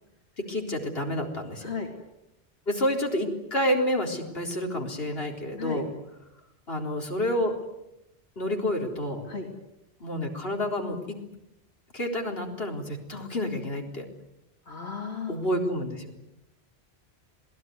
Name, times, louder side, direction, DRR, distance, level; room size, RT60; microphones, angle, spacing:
voice 1, 0.4-1.7 2.7-5.9 6.7-7.6 8.4-9.3 10.0-11.2 11.9-14.0 15.3-16.1, equal, 65° left, 1 dB, 4.3 m, -29 dB
voice 2, 14.7-15.4, left 4 dB, 85° left, 1 dB, 3.4 m, -34 dB
27.0 x 19.5 x 9.5 m, 0.85 s
omnidirectional pair, 1.1 m